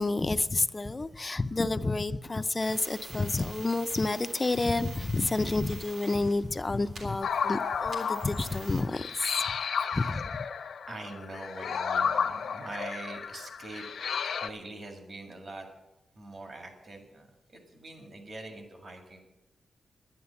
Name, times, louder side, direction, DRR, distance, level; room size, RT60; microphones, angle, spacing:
voice 1, 0.0-9.5 9.9-10.4, left 3 dB, 25° left, 0.4 m, -29 dB
sound 1, 2.6-8.8, right 3 dB, 80° right, 3.3 m, -47 dB
sound 2, 7.2-14.5, left 6 dB, 80° left, 0.8 m, -32 dB
voice 2, 9.8-10.2 10.9-13.9 14.2-15.7 16.2-17.3 17.5-19.2, right 2 dB, 40° right, 2.0 m, -43 dB
11.0 x 10.5 x 7.0 m
wide cardioid pair, 145°, 0 cm